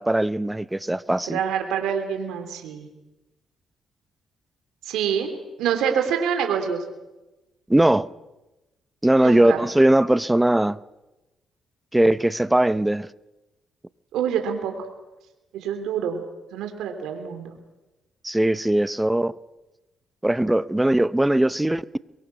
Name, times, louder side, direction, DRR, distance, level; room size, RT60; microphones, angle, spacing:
voice 1, 0.0-1.4 7.7-8.1 9.0-10.8 11.9-13.1 18.2-19.3 20.2-21.8, right 1 dB, 10° right, 0.7 m, -20 dB
voice 2, 1.3-2.9 4.8-6.8 9.2-9.6 14.1-14.9 15.5-16.2 16.5-17.5, right 8 dB, 85° right, 3.4 m, -26 dB
23.5 x 23.0 x 6.1 m
cardioid pair, 90°, 0 cm